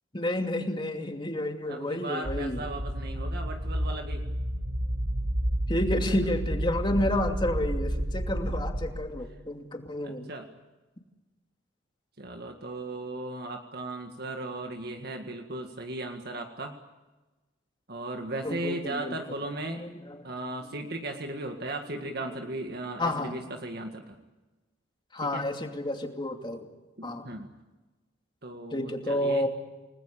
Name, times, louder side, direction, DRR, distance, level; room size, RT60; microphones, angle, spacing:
voice 1, 0.1-2.6 5.7-10.3 18.4-19.1 19.7-20.2 22.0-22.1 23.0-23.4 25.1-26.7 27.0-27.3 28.7-29.5, left 1 dB, 25° left, 4 dB, 2.6 m, -30 dB
voice 2, 1.7-4.2 6.1-6.2 10.0-10.5 12.2-16.8 17.9-19.8 20.2-24.2 25.2-25.4 27.0-27.5 28.4-29.5, right 2 dB, 55° right, 4 dB, 1.9 m, -37 dB
sound 1, 2.2-8.9, right 1 dB, 75° right, 7.6 m, -30 dB
29.0 x 19.5 x 8.6 m, 1.2 s
head